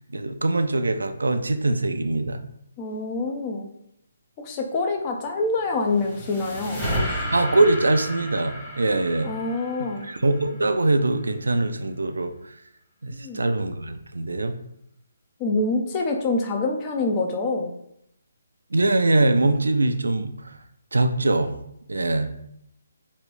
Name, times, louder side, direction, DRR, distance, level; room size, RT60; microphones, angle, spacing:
voice 1, 0.1-2.4 7.3-9.3 10.0-12.3 13.0-14.6 18.7-20.4 20.9-21.5 21.9-22.3, right 2 dB, 85° right, 8 dB, 0.4 m, -22 dB
voice 2, 2.8-3.7 4.4-6.8 9.2-10.1 13.1-13.4 15.4-17.7, left 3 dB, 25° left, 2 dB, 0.5 m, -26 dB
sound 1, 5.6-11.0, equal, 5° left, 1.2 m, -32 dB
3.0 x 2.5 x 3.2 m, 0.75 s
hypercardioid pair, 150°, 0 cm